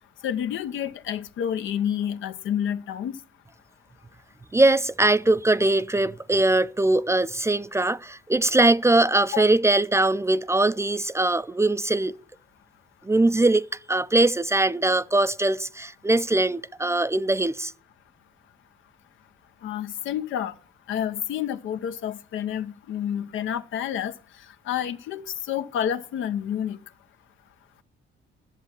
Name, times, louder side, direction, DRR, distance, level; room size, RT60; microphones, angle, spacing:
voice 1, 0.2-3.2 9.3-9.4 19.6-20.5 20.9-24.1 24.7-26.8, left 9 dB, 80° left, 0.9 m, -29 dB
voice 2, 4.5-12.1 13.1-13.6 13.9-17.7, right 2 dB, 15° right, 0.4 m, -21 dB
11.0 x 7.3 x 7.0 m
cardioid pair, 90°, 20 cm